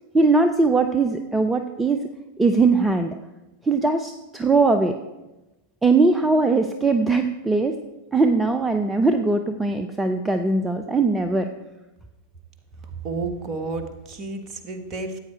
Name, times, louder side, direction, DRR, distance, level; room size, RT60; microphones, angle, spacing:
voice 1, 0.1-2.1 2.4-3.1 3.6-4.9 5.8-7.8 8.1-11.5, right 3 dB, 10° right, 7 dB, 0.6 m, -20 dB
voice 2, 13.0-15.2, right 3 dB, 30° right, 7 dB, 1.4 m, -31 dB
14.5 x 8.7 x 4.6 m, 1.0 s
figure-of-eight pair, 90°, 0 cm